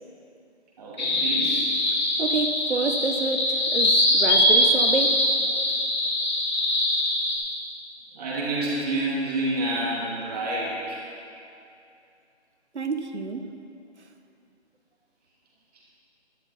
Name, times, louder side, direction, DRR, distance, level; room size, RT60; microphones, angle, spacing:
voice 1, 0.8-1.6 8.2-11.0, right 1 dB, 35° right, -6 dB, 2.9 m, -28 dB
sound 1, 1.0-7.4, left 1 dB, 40° left, 2.5 m, -22 dB
voice 2, 2.2-5.2 12.7-13.5, right 4 dB, 90° right, 7 dB, 1.2 m, -28 dB
11.5 x 10.5 x 4.2 m, 2.5 s
figure-of-eight pair, 160°, 33 cm